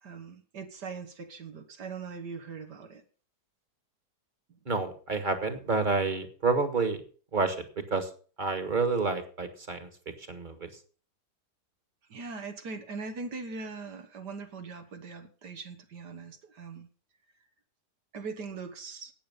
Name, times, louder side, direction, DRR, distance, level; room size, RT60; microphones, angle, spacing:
voice 1, 0.0-3.0 12.1-16.9 18.1-19.1, right 4 dB, 75° right, 5 dB, 2.0 m, -41 dB
voice 2, 4.7-7.0 7.3-7.6 7.9-8.1 8.4-9.9 10.3-10.7, right 4 dB, 30° right, 8 dB, 1.6 m, -28 dB
12.0 x 8.9 x 5.5 m, 0.41 s
omnidirectional pair, 1.8 m